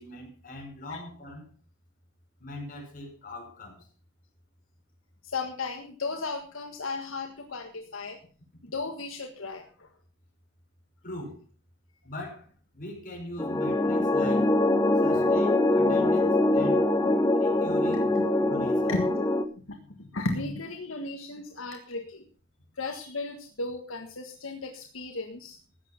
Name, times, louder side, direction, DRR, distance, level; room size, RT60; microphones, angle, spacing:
voice 1, 0.0-1.5 2.4-3.9 11.0-11.4 12.0-12.5 12.7-14.5 15.0-16.8 17.4-18.1 18.4-18.9, left 1 dB, 45° left, 1 dB, 5.4 m, -41 dB
voice 2, 5.2-8.2 8.6-9.9 15.1-15.3 17.0-17.2 18.1-18.2 18.9-19.3 19.7-22.3 22.8-25.6, left 3 dB, 75° left, 4 dB, 1.6 m, -35 dB
sound 1, 13.4-19.4, left 2 dB, 15° left, 0.9 m, -23 dB
14.5 x 9.0 x 5.8 m, 0.39 s
head